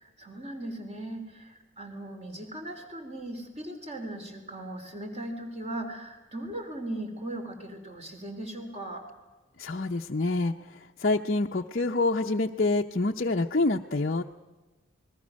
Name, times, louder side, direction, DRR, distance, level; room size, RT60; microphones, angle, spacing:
voice 1, 0.0-9.0, right 1 dB, 30° right, 4 dB, 3.7 m, -38 dB
voice 2, 9.6-10.5 11.0-14.2, left 2 dB, 45° left, 1 dB, 0.7 m, -26 dB
28.0 x 21.0 x 6.4 m, 1.2 s
head